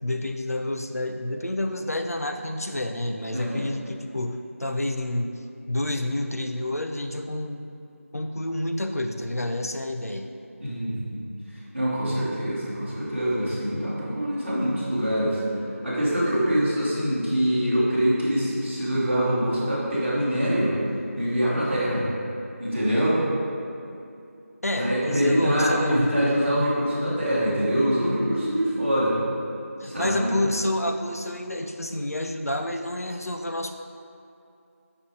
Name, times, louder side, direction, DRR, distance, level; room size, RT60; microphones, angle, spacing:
voice 1, 0.0-7.7 8.1-10.3 24.6-26.1 29.8-33.7, left 1 dB, 80° left, 5 dB, 0.9 m, -29 dB
voice 2, 3.3-3.6 10.6-11.3 11.7-15.4 15.8-20.8 21.2-22.1 22.6-23.2 24.8-29.2 29.8-30.3, equal, 10° right, -16 dB, 1.9 m, -24 dB
13.5 x 6.1 x 3.9 m, 2.6 s
figure-of-eight pair, 175°, 8 cm